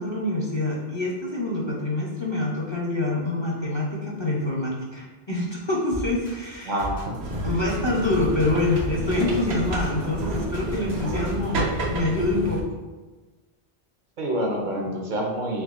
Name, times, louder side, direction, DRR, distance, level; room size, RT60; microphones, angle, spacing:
voice 1, 0.0-6.8 7.4-12.6, left 2 dB, 35° left, -4 dB, 0.6 m, -26 dB
sound 1, 5.9-11.6, right 2 dB, 85° left, 1.8 m, -35 dB
voice 2, 6.6-7.4 14.2-15.6, right 1 dB, 55° right, 0 dB, 0.7 m, -27 dB
sound 2, 7.2-12.6, right 1 dB, 85° right, 0.9 m, -30 dB
4.5 x 3.5 x 2.4 m, 1.2 s
omnidirectional pair, 1.0 m